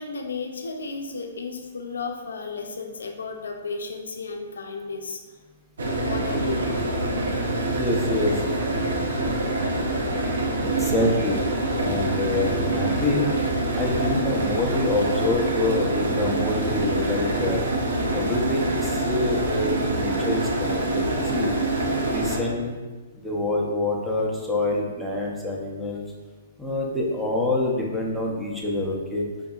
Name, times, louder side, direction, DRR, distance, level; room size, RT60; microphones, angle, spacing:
voice 1, 0.0-5.2 6.0-6.8 7.9-8.0, left 4 dB, 85° left, 5 dB, 0.5 m, -33 dB
sound 1, 5.8-22.4, right 2 dB, 80° right, 0.6 m, -25 dB
voice 2, 7.7-8.3 10.6-11.4 11.8-13.3 13.8-17.6 18.1-21.5 22.1-22.8 23.2-26.0 26.6-29.2, left 2 dB, ahead, -3 dB, 0.6 m, -26 dB
4.9 x 2.6 x 2.3 m, 1.3 s
hypercardioid pair, 135°, 0 cm